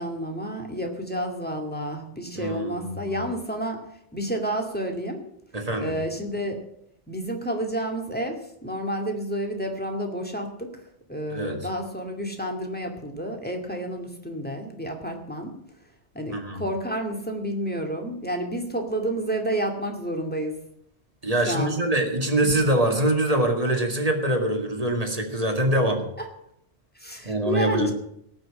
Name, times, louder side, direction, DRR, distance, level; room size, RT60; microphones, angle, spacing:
voice 1, 0.0-3.8 4.1-5.2 5.8-6.6 7.1-10.7 11.1-15.5 16.1-20.6 21.5-21.8 22.4-22.5 26.2-26.3 26.9-27.9, equal, 10° left, 2 dB, 2.3 m, -30 dB
voice 2, 2.4-3.2 5.5-5.9 11.3-11.6 16.3-16.6 21.2-26.0 27.2-27.9, right 1 dB, 30° right, 3 dB, 2.2 m, -24 dB
18.0 x 6.3 x 8.6 m, 0.75 s
omnidirectional pair, 1.2 m